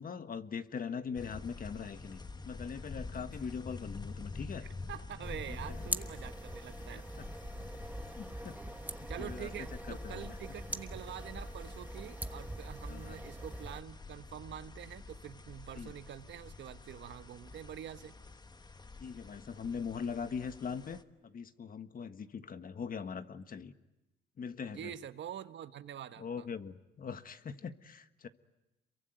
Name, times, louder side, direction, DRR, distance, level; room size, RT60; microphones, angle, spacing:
voice 1, 0.0-4.7 5.5-5.6 8.2-8.6 9.0-9.5 9.9-10.4 12.9-13.2 15.7-15.9 19.0-23.7 24.4-24.9 26.2-28.3, left 6 dB, 45° left, 1.5 m, -41 dB
sound 1, 1.1-21.0, left 3 dB, 20° left, 1.3 m, -48 dB
voice 2, 4.6-7.0 9.1-18.1 24.7-26.5, right 10 dB, 65° right, 1.2 m, -46 dB
sound 2, 5.2-13.8, right 1 dB, 10° right, 1.2 m, -43 dB
27.5 x 23.0 x 9.3 m
cardioid pair, 90°, 20 cm